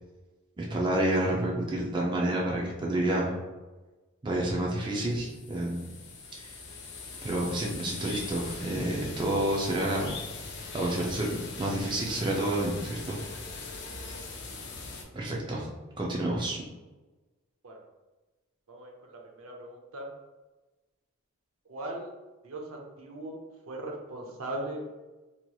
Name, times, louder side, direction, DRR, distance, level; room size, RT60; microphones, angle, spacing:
voice 1, 0.6-3.4 4.2-5.9 6.4-6.5 7.2-10.2 10.7-13.2 15.1-15.7 16.0-16.6, right 1 dB, 20° right, -3 dB, 0.4 m, -29 dB
sound 1, 5.0-15.0, left 3 dB, 55° left, 0.5 m, -41 dB
voice 2, 18.7-20.1 21.7-22.1 22.4-23.4 23.7-24.8, right 1 dB, 85° right, 0 dB, 0.6 m, -39 dB
3.0 x 2.9 x 2.3 m, 1.2 s
head